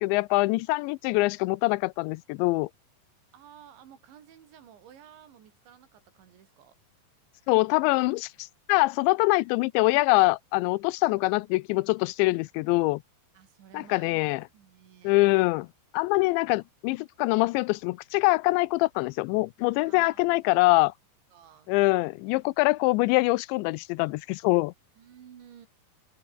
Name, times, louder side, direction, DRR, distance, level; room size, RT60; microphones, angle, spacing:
voice 1, 0.0-2.7 7.5-13.0 13.7-14.4 15.0-15.7 15.9-20.9 21.7-24.7, left 23 dB, 90° left, 2.9 m, -24 dB
voice 2, 3.3-6.8 11.0-11.5 13.4-15.3 19.8-20.7 21.3-21.8 25.0-25.7, right 9 dB, 85° right, 5.3 m, -53 dB
omnidirectional pair, 5.1 m